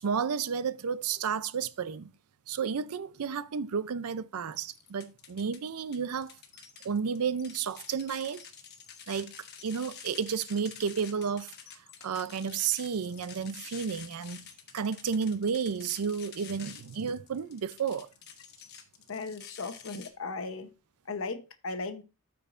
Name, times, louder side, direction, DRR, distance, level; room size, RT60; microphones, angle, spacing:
voice 1, 0.0-2.1 2.5-6.3 6.8-8.4 9.1-9.3 9.6-11.5 12.0-18.1, right 6 dB, 90° right, 0.5 m, -32 dB
sound 1, 4.5-5.6 5.9-20.1, left 7 dB, 45° left, 1.1 m, -49 dB
voice 2, 19.1-20.7 21.1-22.0, left 3 dB, 65° left, 0.9 m, -37 dB
12.5 x 4.6 x 2.5 m
head